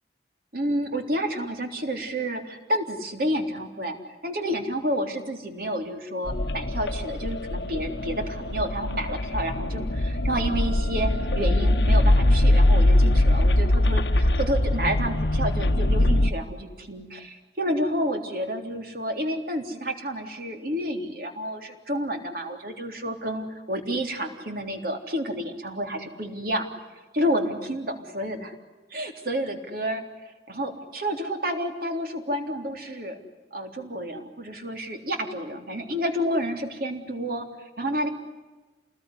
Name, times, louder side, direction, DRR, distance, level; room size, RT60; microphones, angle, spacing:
voice 1, 0.5-4.0 4.2-11.1 11.4-26.7 27.1-28.6 28.9-33.2 33.5-37.5 37.8-38.1, equal, 50° right, 4 dB, 3.6 m, -30 dB
sound 1, 6.3-16.3, left 1 dB, 65° left, 1.1 m, -22 dB
28.5 x 20.5 x 9.9 m, 1.2 s
head